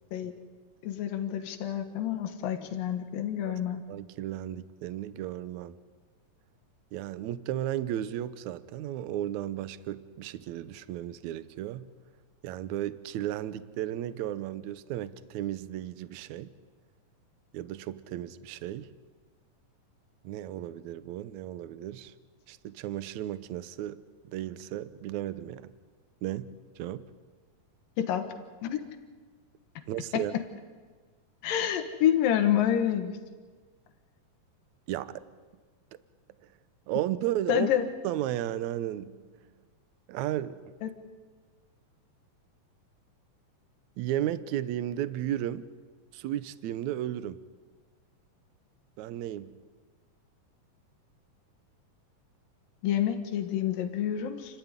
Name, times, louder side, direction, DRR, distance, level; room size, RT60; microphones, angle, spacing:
voice 1, 0.8-3.8 28.0-28.3 28.6-28.8 30.1-30.2 31.4-33.1 37.5-37.9 40.8-40.9 52.8-54.6, left 10 dB, 80° left, 3.2 m, -28 dB
voice 2, 3.9-5.7 6.9-11.9 12.4-16.5 17.5-18.9 20.2-22.1 22.5-25.7 26.2-27.1 29.9-30.3 34.9-35.3 36.9-37.7 38.0-39.2 40.1-40.7 44.0-45.7 46.1-47.4 49.0-49.6, right 12 dB, 70° right, 1.9 m, -34 dB
29.5 x 13.0 x 9.8 m
omnidirectional pair, 4.0 m